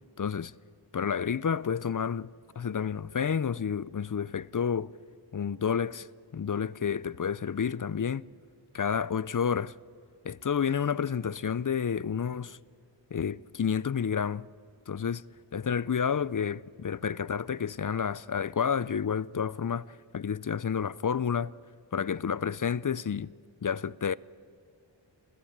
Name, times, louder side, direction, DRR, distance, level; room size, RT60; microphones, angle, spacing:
voice 1, 0.2-0.5 0.9-2.3 2.6-4.9 5.3-6.1 6.3-8.2 8.7-9.8 10.2-12.6 13.1-14.4 14.9-15.2 15.5-19.9 20.1-21.5 21.9-23.3 23.6-24.2, left 7 dB, 45° left, 0.5 m, -30 dB
27.5 x 15.5 x 8.7 m
wide cardioid pair, 45°, 46 cm